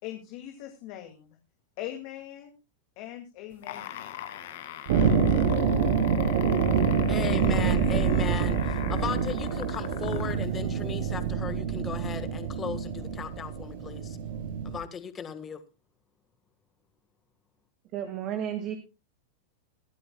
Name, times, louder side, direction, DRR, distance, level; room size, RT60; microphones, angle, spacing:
voice 1, 0.0-1.4 1.8-2.5 3.0-4.1, left 12 dB, 50° left, 5 dB, 2.2 m, -41 dB
sound 1, 3.5-10.5 11.3-11.4, left 12 dB, 70° left, 2.1 m, -41 dB
sound 2, 4.9-14.8, right 6 dB, 70° right, 3.8 m, -26 dB
voice 2, 7.1-14.2 14.6-15.6, left 7 dB, 25° left, 11 dB, 1.6 m, -37 dB
voice 3, 17.9-18.8, right 10 dB, 40° right, 6 dB, 2.0 m, -32 dB
22.5 x 12.0 x 2.3 m, 0.27 s
hypercardioid pair, 130°, 0 cm